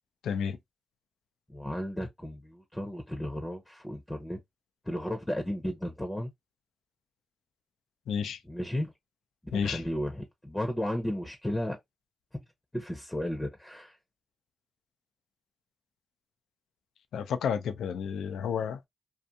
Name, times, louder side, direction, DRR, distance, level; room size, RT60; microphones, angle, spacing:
voice 1, 0.2-0.6 8.1-8.4 9.5-9.8 17.1-18.9, left 7 dB, 85° left, 0.3 m, -31 dB
voice 2, 1.5-4.4 4.9-6.3 8.4-8.9 9.5-11.8 12.7-14.0, left 1 dB, 15° left, 0.7 m, -34 dB
2.7 x 2.4 x 2.2 m
supercardioid pair, 40°, 0 cm